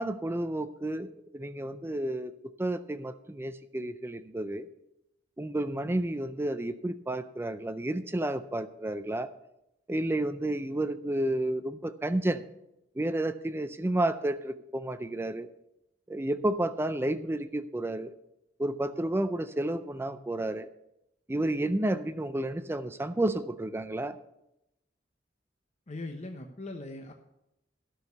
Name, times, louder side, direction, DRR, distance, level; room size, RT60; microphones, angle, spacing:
voice 1, 0.0-2.3 2.6-4.7 5.4-9.3 9.9-12.4 13.0-15.5 16.1-18.1 18.6-20.7 21.3-24.2, right 1 dB, 15° right, 12 dB, 0.4 m, -31 dB
voice 2, 25.9-27.1, left 2 dB, 40° left, 3 dB, 0.9 m, -40 dB
13.5 x 6.3 x 6.8 m, 0.86 s
head